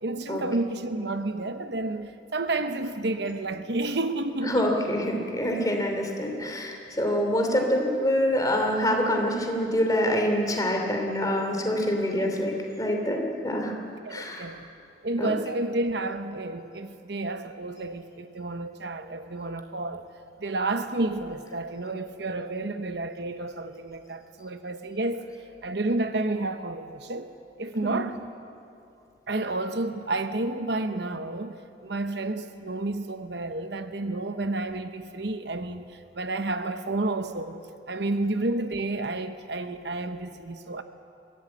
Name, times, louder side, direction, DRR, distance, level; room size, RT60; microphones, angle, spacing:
voice 1, 0.0-4.8 12.2-12.3 14.0-14.6 15.0-20.1 20.4-25.3 25.6-27.3 27.6-28.2 29.3-37.6 37.9-40.8, right 2 dB, 65° right, 0.9 m, -30 dB
voice 2, 4.4-13.7 14.1-14.5 15.2-15.4 27.8-28.0, equal, 20° left, 2.8 m, -26 dB
22.5 x 16.5 x 8.6 m
head